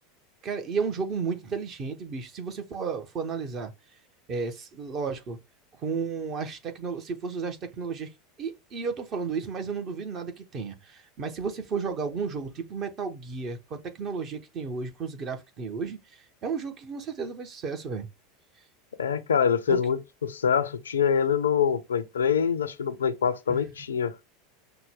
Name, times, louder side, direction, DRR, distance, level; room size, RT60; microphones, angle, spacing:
voice 1, 0.4-3.7 4.3-5.4 5.8-8.1 8.4-18.1 19.7-19.8 23.5-23.7, right 5 dB, 35° right, 1.0 m, -33 dB
voice 2, 19.0-24.1, left 7 dB, 70° left, 0.5 m, -25 dB
5.9 x 2.2 x 3.6 m
figure-of-eight pair, 80°, 0 cm